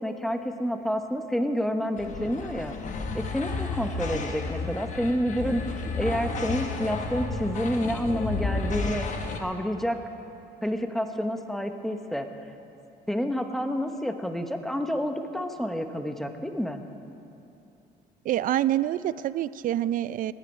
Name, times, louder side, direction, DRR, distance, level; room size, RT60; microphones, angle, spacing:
voice 1, 0.0-2.8 3.1-5.6 6.0-9.1 9.4-10.0 10.6-12.3 13.1-16.8, equal, ahead, 6 dB, 0.9 m, -29 dB
sound 1, 2.0-9.4, left 3 dB, 45° left, 1.3 m, -32 dB
voice 2, 18.3-20.3, right 12 dB, 55° right, 17 dB, 0.4 m, -26 dB
18.0 x 10.0 x 5.4 m, 2.8 s
cardioid pair, 110°, 17 cm